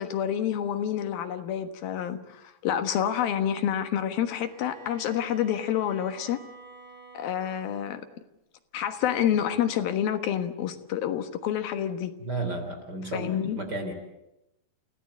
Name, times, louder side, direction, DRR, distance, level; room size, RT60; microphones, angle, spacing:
voice 1, 0.0-6.4 7.1-8.0 8.7-12.1 13.1-13.6, left 9 dB, 75° left, 8 dB, 3.2 m, -28 dB
Bowed string instrument, 4.3-8.1, right 4 dB, 55° right, 6.0 m, -49 dB
voice 2, 12.2-13.3 13.6-13.9, right 2 dB, 30° right, 6 dB, 3.3 m, -32 dB
29.5 x 16.5 x 8.6 m, 0.90 s
omnidirectional pair, 4.3 m